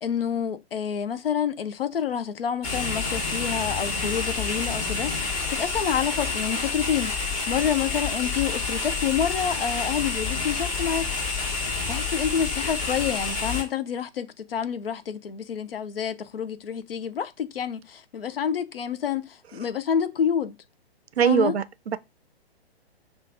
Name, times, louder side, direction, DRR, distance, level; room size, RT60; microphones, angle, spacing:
voice 1, 0.0-11.1 11.9-20.6 21.2-21.6, left 8 dB, 60° left, 0.5 m, -28 dB
sound 1, 2.6-13.6, left 4 dB, 35° left, 1.4 m, -28 dB
voice 2, 21.2-22.0, right 9 dB, 75° right, 0.5 m, -22 dB
6.2 x 2.4 x 2.5 m
figure-of-eight pair, 120°, 32 cm